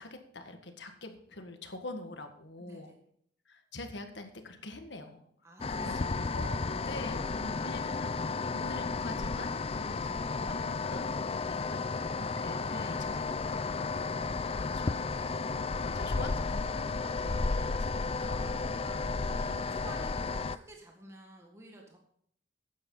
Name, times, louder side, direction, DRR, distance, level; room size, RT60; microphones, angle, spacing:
voice 1, 0.0-2.9 3.4-5.3 5.8-11.8 12.1-13.8 14.2-18.6, left 2 dB, 70° left, 6 dB, 1.6 m, -45 dB
voice 2, 2.6-2.9 5.4-6.1 11.4-11.6 14.0-14.2 18.1-18.2 18.8-22.0, right 2 dB, 15° right, 0 dB, 1.7 m, -51 dB
sound 1, 5.6-20.6, left 4 dB, 30° left, 0.4 m, -33 dB
12.5 x 9.5 x 4.0 m, 0.66 s
head